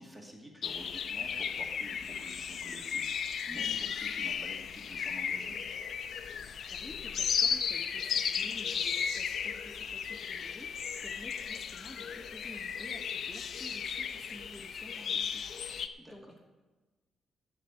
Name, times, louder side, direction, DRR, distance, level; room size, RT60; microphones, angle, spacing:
voice 1, 0.0-5.6 16.0-16.3, equal, 10° right, 0 dB, 2.1 m, -49 dB
sound 1, 0.6-15.9, left 7 dB, 50° left, 0.6 m, -35 dB
voice 2, 6.7-16.6, left 1 dB, 5° left, 0 dB, 1.0 m, -51 dB
15.0 x 5.4 x 9.3 m, 1.2 s
cardioid pair, 165°, 0 cm